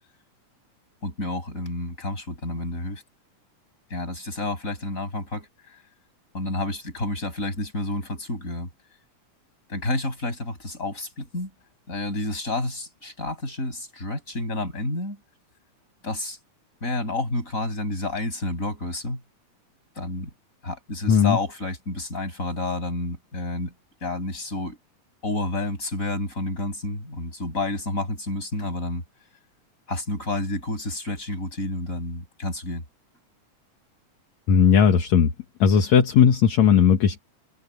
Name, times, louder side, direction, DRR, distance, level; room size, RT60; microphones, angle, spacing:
voice 1, 1.0-3.0 3.9-5.8 6.3-8.7 9.7-11.5 11.9-15.2 16.0-16.4 16.8-19.2 20.0-20.3 20.6-23.7 24.0-24.8 25.2-29.0 29.9-32.8, left 2 dB, 25° left, 8.2 m, -30 dB
voice 2, 21.1-21.4 34.5-35.3 35.6-37.2, left 7 dB, 65° left, 2.8 m, -17 dB
omnidirectional pair, 3.6 m